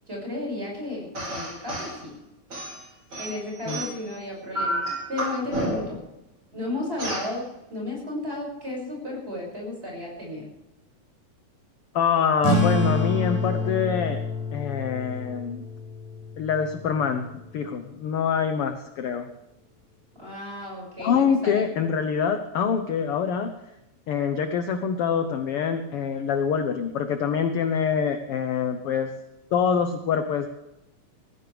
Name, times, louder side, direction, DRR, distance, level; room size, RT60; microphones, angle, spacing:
voice 1, 0.1-2.2 3.2-6.0 6.5-10.5 20.2-21.7, left 2 dB, 20° right, -2 dB, 6.8 m, -33 dB
sound 1, 1.1-1.9 2.5-4.1 4.5-6.0 7.0-7.3, right 1 dB, 40° right, 5.8 m, -30 dB
voice 2, 11.9-14.2 14.5-15.6 16.4-17.3 17.5-19.3 21.0-23.5 24.1-29.1 29.5-30.5, left 7 dB, 65° left, 7 dB, 1.5 m, -25 dB
sound 2, 12.4-17.5, left 2 dB, 80° right, 6.0 m, -28 dB
20.0 x 15.5 x 3.5 m, 0.89 s
omnidirectional pair, 3.4 m